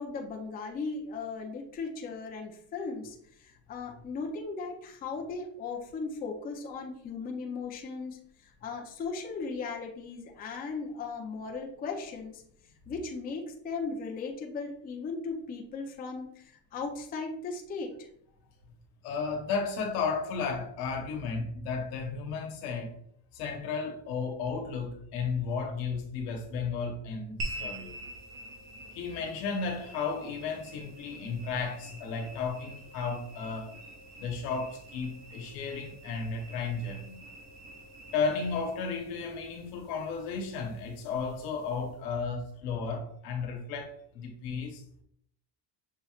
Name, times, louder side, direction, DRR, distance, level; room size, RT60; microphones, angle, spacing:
voice 1, 0.0-12.4 12.9-18.1, left 4 dB, 25° left, 0.5 m, -37 dB
voice 2, 19.0-23.0 23.3-27.9 28.9-33.8 34.2-37.2 38.1-45.0, left 5 dB, 85° left, 1.1 m, -34 dB
sound 1, 27.4-42.0, right 1 dB, 40° right, 0.9 m, -46 dB
6.3 x 3.1 x 2.4 m
cardioid pair, 160°, 40 cm